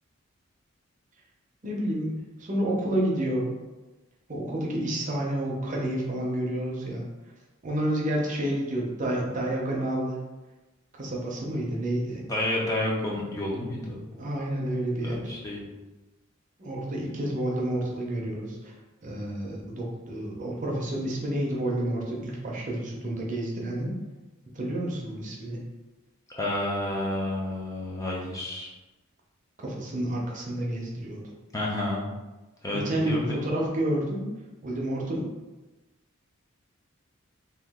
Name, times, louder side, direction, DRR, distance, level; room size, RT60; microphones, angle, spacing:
voice 1, 1.6-3.5 4.3-7.1 7.6-10.2 10.9-12.2 14.2-15.2 16.6-18.7 19.0-23.9 24.5-25.6 29.6-31.2 32.7-34.2 34.6-35.3, right 1 dB, 35° right, -2 dB, 0.6 m, -29 dB
voice 2, 12.3-14.0 15.0-15.7 26.3-28.7 31.5-32.1 32.6-33.4, left 1 dB, 15° left, -4 dB, 0.5 m, -30 dB
2.8 x 2.3 x 3.5 m, 1.1 s
head